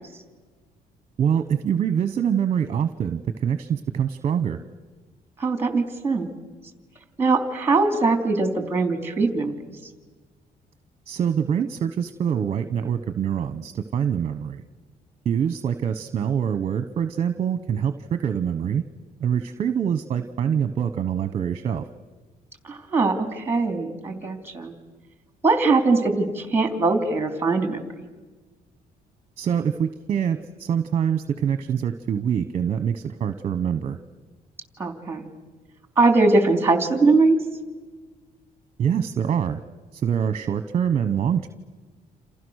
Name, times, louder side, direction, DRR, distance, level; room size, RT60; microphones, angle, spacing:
voice 1, 1.2-4.6 11.1-14.6 15.2-18.8 19.2-21.8 29.4-34.0 38.8-39.6 39.9-41.5, right 8 dB, 40° right, 11 dB, 1.0 m, -25 dB
voice 2, 5.4-6.3 7.2-9.5 22.6-24.7 25.4-27.9 34.8-35.2 36.0-37.4, right 3 dB, 15° right, 7 dB, 3.2 m, -21 dB
28.5 x 28.5 x 6.5 m, 1.3 s
cardioid pair, 145°, 16 cm